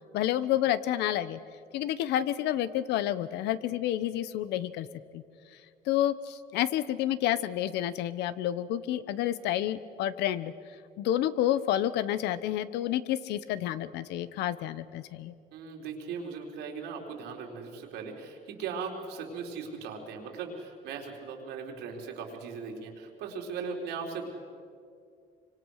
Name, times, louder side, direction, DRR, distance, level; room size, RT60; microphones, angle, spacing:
voice 1, 0.1-1.4 1.7-4.9 5.1-5.2 5.9-10.5 11.0-15.3, left 12 dB, 85° left, 15 dB, 1.0 m, -29 dB
voice 2, 15.5-24.3, right 5 dB, 85° right, 1 dB, 4.1 m, -38 dB
26.5 x 25.0 x 6.5 m, 2.4 s
cardioid pair, 110°, 17 cm